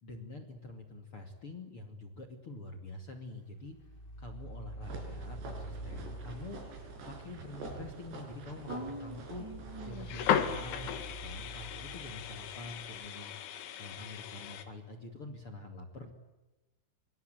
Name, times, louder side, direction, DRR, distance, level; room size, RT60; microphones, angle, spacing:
voice 1, 0.0-3.8 4.2-6.6 7.1-9.5 9.8-10.9 11.2-13.3 13.8-16.1, left 2 dB, 35° left, 7 dB, 2.5 m, -46 dB
sound 1, 3.7-7.4 8.7-13.1, right 2 dB, 15° left, 2.3 m, -47 dB
sound 2, 4.8-10.9, right 3 dB, 60° right, 7.0 m, -47 dB
voice 2, 8.7-10.1, right 1 dB, 10° right, 5 dB, 1.7 m, -43 dB
sound 3, 9.9-14.7, left 9 dB, 70° left, 4.2 m, -36 dB
25.5 x 25.0 x 9.3 m, 1.1 s
omnidirectional pair, 5.7 m